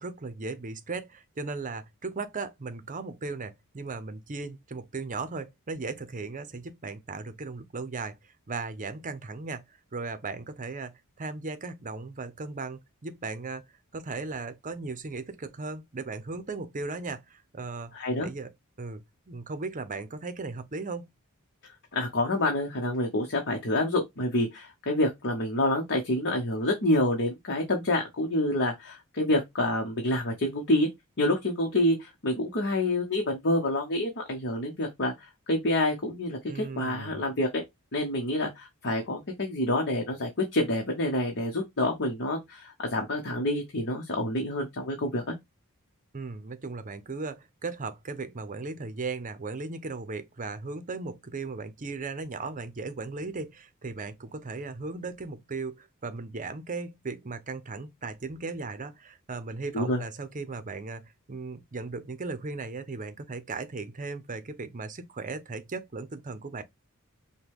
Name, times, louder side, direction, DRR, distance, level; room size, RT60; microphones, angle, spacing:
voice 1, 0.0-8.2 8.5-9.6 9.9-13.6 13.9-17.9 18.2-18.5 18.8-21.1 36.5-37.2 46.1-66.6, right 3 dB, 35° right, 0.7 m, -37 dB
voice 2, 17.9-18.3 21.9-30.9 31.2-37.5 37.9-45.3 59.7-60.0, left 1 dB, 55° left, 1.1 m, -27 dB
5.9 x 2.3 x 3.5 m
head